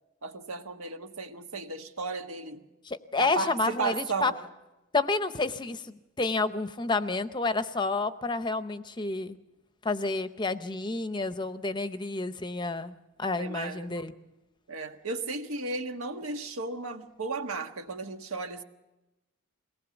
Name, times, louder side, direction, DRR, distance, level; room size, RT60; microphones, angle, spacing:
voice 1, 0.2-2.7 3.2-4.4 13.4-14.1 14.7-18.6, right 3 dB, 80° right, 6 dB, 1.5 m, -34 dB
voice 2, 2.8-4.3 4.9-9.4 9.8-12.9 13.2-14.1, left 3 dB, 20° left, 11 dB, 0.7 m, -30 dB
22.0 x 18.5 x 7.1 m, 1.0 s
head